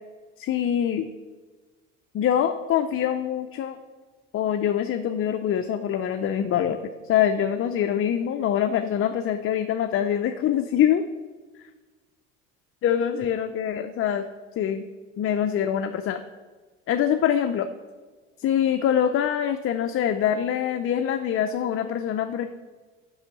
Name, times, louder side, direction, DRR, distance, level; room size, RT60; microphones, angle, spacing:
voice 1, 0.4-1.1 2.1-3.8 4.3-6.8 7.0-11.0 12.8-14.2 14.6-14.9 15.2-16.2 16.9-17.7 18.4-22.5, left 9 dB, 35° left, 7 dB, 0.5 m, -24 dB
5.6 x 5.5 x 5.7 m, 1.4 s
hypercardioid pair, 75°, 38 cm